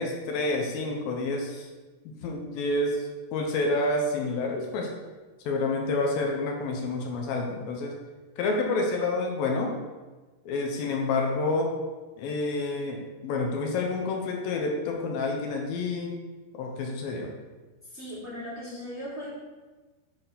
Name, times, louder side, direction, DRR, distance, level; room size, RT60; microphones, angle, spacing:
voice 1, 0.0-1.7 2.2-4.9 5.5-8.0 8.4-9.8 10.5-11.8 12.2-16.2 16.5-17.3, left 2 dB, 75° left, 1 dB, 2.3 m, -28 dB
voice 2, 17.9-19.3, equal, 35° right, -9 dB, 1.0 m, -38 dB
9.1 x 3.6 x 5.8 m, 1.3 s
omnidirectional pair, 4.8 m